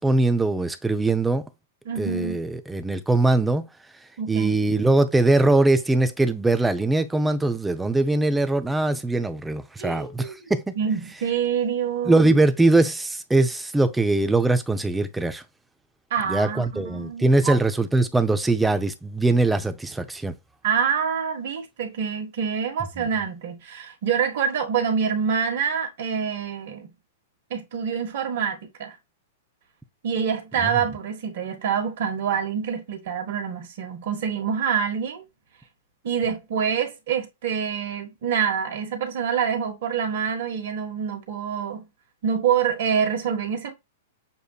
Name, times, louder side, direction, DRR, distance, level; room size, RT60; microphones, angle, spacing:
voice 1, 0.0-1.4 2.0-3.7 4.3-10.7 12.1-15.4 16.3-20.3 23.0-23.1, right 2 dB, 5° right, 0.6 m, -21 dB
voice 2, 1.8-2.4 4.2-4.6 9.8-10.3 10.8-12.2 16.1-17.6 20.6-26.9 27.5-28.9 30.0-35.2 36.0-41.8 42.2-43.7, right 7 dB, 60° right, 1.5 m, -26 dB
6.9 x 2.5 x 2.4 m
hypercardioid pair, 110°, 0 cm